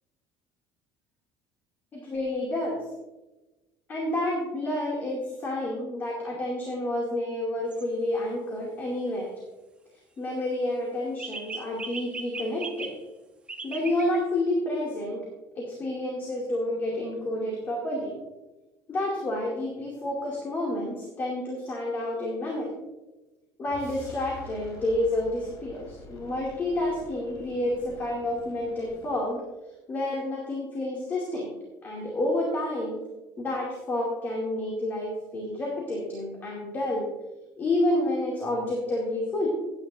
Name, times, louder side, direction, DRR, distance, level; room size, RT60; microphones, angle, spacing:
voice 1, 1.9-2.8 3.9-9.3 10.2-12.9 13.6-15.2 15.6-18.1 18.9-22.7 23.6-29.4 29.9-31.5 31.8-33.0 33.4-37.1 37.6-39.5, left 1 dB, 25° left, -3 dB, 2.4 m, -29 dB
sound 1, 7.7-7.8 11.2-13.0 13.5-14.2, right 3 dB, 15° right, 0.9 m, -38 dB
sound 2, 23.7-29.3, left 2 dB, 55° left, 2.8 m, -47 dB
16.5 x 9.8 x 2.6 m, 1.1 s
cardioid pair, 165°, 7 cm